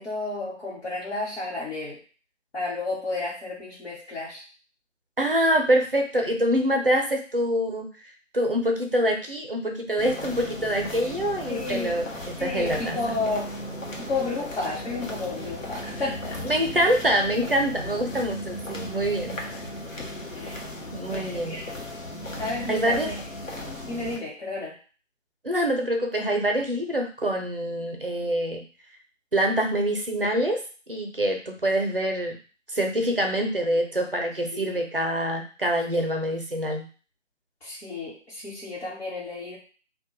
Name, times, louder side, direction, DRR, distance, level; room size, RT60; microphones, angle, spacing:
voice 1, 0.0-2.0 2.5-4.4 11.5-12.0 12.4-13.5 14.0-16.4 20.3-20.6 21.1-21.6 22.4-23.1 23.8-24.7 34.5-34.8 37.6-39.6, left 3 dB, 55° left, -6 dB, 1.0 m, -32 dB
voice 2, 5.2-7.9 8.3-12.1 12.4-13.1 16.4-19.4 20.9-21.6 22.7-23.1 25.4-28.6 29.3-30.6 30.9-32.4 32.7-36.8, equal, 50° right, 2 dB, 0.5 m, -25 dB
sound 1, 10.0-24.2, left 1 dB, 90° left, 0.8 m, -36 dB
2.2 x 2.1 x 2.9 m, 0.38 s
figure-of-eight pair, 165°, 38 cm